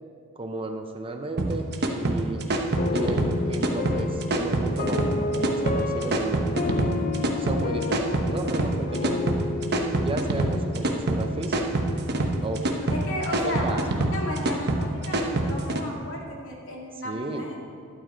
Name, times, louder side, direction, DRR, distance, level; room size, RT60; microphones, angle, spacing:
voice 1, 0.4-2.5 2.9-6.6 7.4-9.4 10.0-11.8 12.4-12.8 13.4-13.8 17.0-17.5, right 2 dB, 25° right, 5 dB, 0.7 m, -33 dB
sound 1, 1.4-15.8, right 2 dB, 50° right, 1.0 m, -25 dB
sound 2, 2.8-11.9, left 3 dB, 40° left, 0.6 m, -31 dB
voice 2, 12.9-13.8 14.1-17.5, left 1 dB, 65° left, -2 dB, 2.2 m, -34 dB
12.0 x 12.0 x 3.9 m, 2.4 s
head